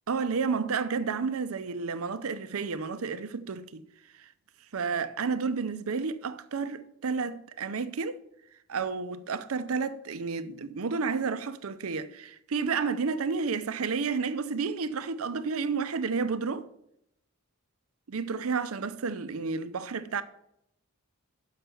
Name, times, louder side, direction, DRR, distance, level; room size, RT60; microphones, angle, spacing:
voice 1, 0.1-3.8 4.2-4.3 4.7-8.2 8.7-16.7 18.1-20.2, right 5 dB, 85° right, 0.6 m, -31 dB
6.6 x 6.0 x 6.8 m
head